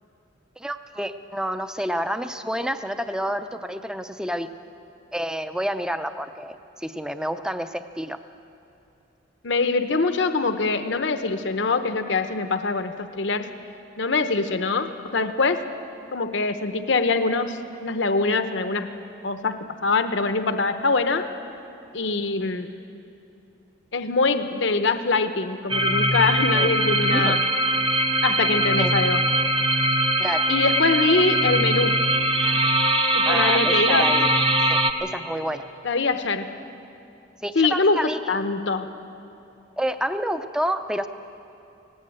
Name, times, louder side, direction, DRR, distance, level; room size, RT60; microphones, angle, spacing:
voice 1, 0.6-4.5 5.1-8.2 26.5-26.7 27.1-27.4 28.8-28.9 30.2-30.5 33.2-34.3 34.7-35.6 37.4-38.2 39.8-41.1, equal, 5° right, 9 dB, 0.5 m, -29 dB
voice 2, 9.4-13.5 14.0-15.6 16.1-18.9 19.2-21.3 21.9-22.7 23.9-27.4 28.2-29.2 30.5-32.0 33.1-34.1 35.8-36.5 37.5-38.9, left 3 dB, 65° left, 8 dB, 0.8 m, -23 dB
sound 1, 25.7-34.9, right 1 dB, 25° right, 0.9 m, -21 dB
18.0 x 17.5 x 8.7 m, 2.8 s
head